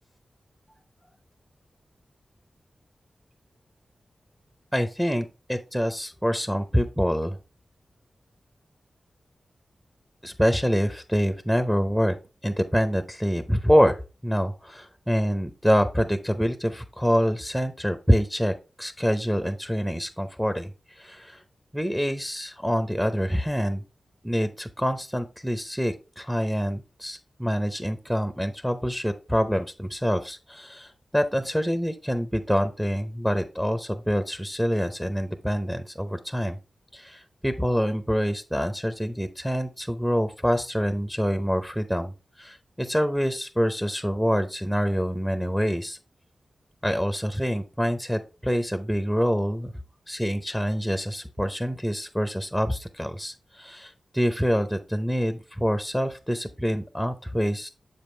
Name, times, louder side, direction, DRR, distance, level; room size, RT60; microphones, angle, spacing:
voice 1, 4.7-7.4 10.2-12.2 12.4-14.0 14.2-21.4 21.7-23.8 24.2-36.6 36.9-42.1 42.4-46.0 46.8-49.7 50.1-57.7, equal, 5° right, 9 dB, 0.7 m, -26 dB
7.0 x 5.1 x 3.2 m, 0.30 s
cardioid pair, 45°, 0 cm